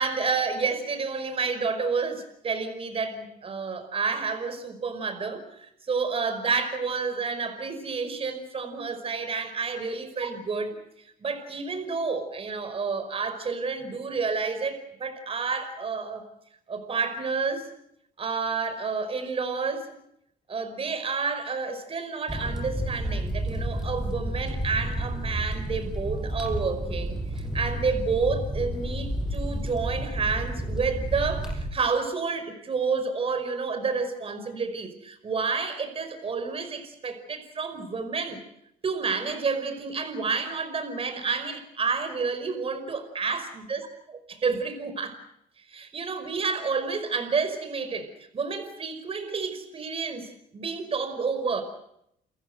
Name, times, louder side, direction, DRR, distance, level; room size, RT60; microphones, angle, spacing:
voice 1, 0.0-16.2 16.7-17.7 18.2-19.9 20.5-38.4 38.8-43.8 44.4-45.2 45.7-51.6, right 4 dB, 35° right, 9 dB, 5.3 m, -30 dB
sound 1, 22.3-31.7, right 1 dB, 5° right, 6.7 m, -31 dB
29.5 x 15.5 x 9.1 m, 0.76 s
cardioid pair, 110°, 17 cm